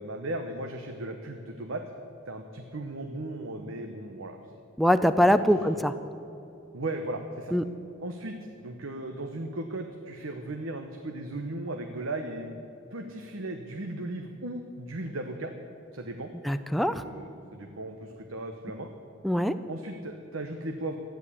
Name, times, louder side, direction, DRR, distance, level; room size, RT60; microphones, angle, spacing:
voice 1, 0.0-1.8 2.3-4.4 5.2-5.5 6.7-7.5 8.0-12.6 12.9-15.5 15.9-16.3 16.9-18.9 19.7-21.0, right 2 dB, 85° right, 4 dB, 1.1 m, -36 dB
voice 2, 4.8-5.9 7.5-7.6 16.5-16.9 19.2-19.6, equal, ahead, 9 dB, 0.4 m, -22 dB
14.0 x 10.5 x 8.5 m, 2.9 s
head